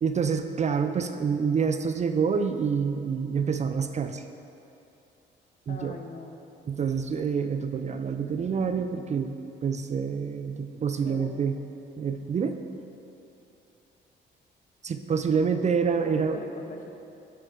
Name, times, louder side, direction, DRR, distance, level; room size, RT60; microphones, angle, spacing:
voice 1, 0.0-4.3 5.7-6.0 6.7-9.3 9.6-11.6 12.0-12.6 14.8-16.4, right 6 dB, 35° right, 8 dB, 0.4 m, -27 dB
voice 2, 5.7-6.4 11.0-11.3 16.0-16.9, left 4 dB, 45° left, 4 dB, 0.9 m, -41 dB
8.1 x 7.9 x 3.7 m, 2.9 s
cardioid pair, 90°, 20 cm